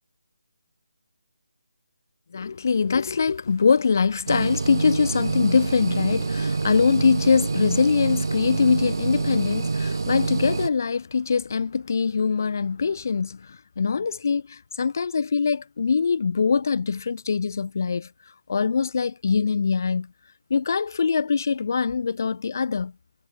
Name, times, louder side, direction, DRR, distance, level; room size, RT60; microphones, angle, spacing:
voice 1, 2.3-18.1 18.5-20.1 20.5-22.9, left 5 dB, 45° left, 2.6 m, -23 dB
sound 1, 4.3-10.7, right 4 dB, 65° right, 6.3 m, -26 dB
hypercardioid pair, 170°, 2 cm